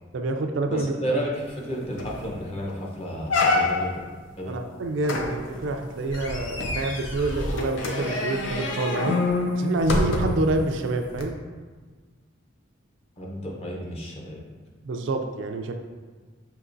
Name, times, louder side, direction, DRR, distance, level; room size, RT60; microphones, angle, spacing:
voice 1, 0.1-1.2 4.5-9.2 9.6-11.4 14.8-15.7, right 2 dB, 70° right, 5 dB, 0.4 m, -27 dB
voice 2, 0.7-4.0 4.4-4.6 13.2-14.4, equal, 30° left, -2 dB, 0.8 m, -32 dB
sound 1, 1.5-1.6 2.0-2.3 2.7-2.8 3.3-4.0 5.0-10.5 11.1-11.2, left 2 dB, 70° left, 0.6 m, -27 dB
6.6 x 2.8 x 2.6 m, 1.4 s
head